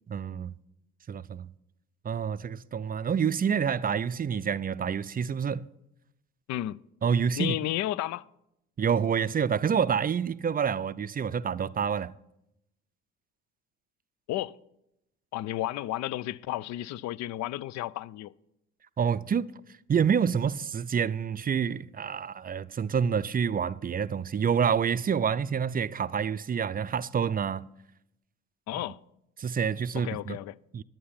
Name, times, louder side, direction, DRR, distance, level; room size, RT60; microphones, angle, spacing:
voice 1, 0.1-0.5 1.1-1.5 2.0-5.7 7.0-7.6 8.8-12.1 19.0-19.5 19.9-27.7 29.4-30.4 30.7-30.8, right 7 dB, 25° right, 0.4 m, -27 dB
voice 2, 6.5-6.8 7.4-8.3 14.3-14.6 15.3-18.3 28.7-29.0 29.9-30.6, left 14 dB, 55° left, 0.5 m, -32 dB
11.0 x 9.1 x 5.7 m
hypercardioid pair, 55°, 33 cm